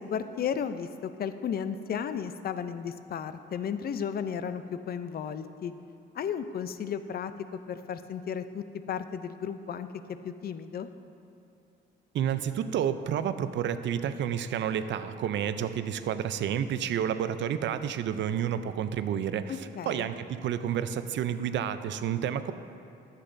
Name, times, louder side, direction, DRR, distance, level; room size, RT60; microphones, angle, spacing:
voice 1, 0.0-5.7 6.1-10.9 19.5-20.1, left 7 dB, 50° left, 11 dB, 0.5 m, -34 dB
voice 2, 12.1-22.5, right 9 dB, 65° right, 11 dB, 0.5 m, -30 dB
13.0 x 8.3 x 2.6 m, 2.8 s
cardioid pair, 90°, 20 cm